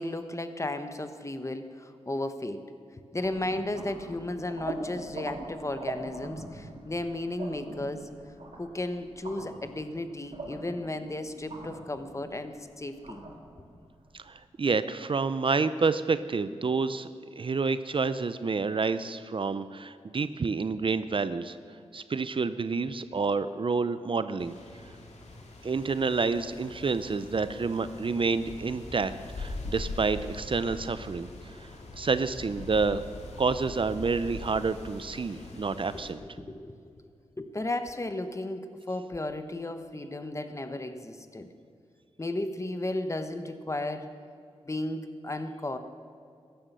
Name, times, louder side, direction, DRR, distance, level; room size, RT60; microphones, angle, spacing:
voice 1, 0.0-2.6 3.1-8.1 8.5-13.2 35.9-36.8 37.4-41.5 42.2-44.1 44.6-45.8, left 1 dB, 25° left, 9 dB, 1.1 m, -34 dB
sound 1, 3.2-14.3, right 2 dB, 65° right, 3.2 m, -43 dB
voice 2, 14.1-17.1 17.4-21.6 21.9-24.6 25.6-29.1 29.4-31.3 31.6-31.7 31.9-33.0 33.4-36.2, right 4 dB, 50° right, 13 dB, 0.6 m, -28 dB
sound 2, 24.4-36.1, left 2 dB, 80° left, 2.1 m, -42 dB
15.0 x 11.5 x 6.8 m, 2.3 s
cardioid pair, 70°, 11 cm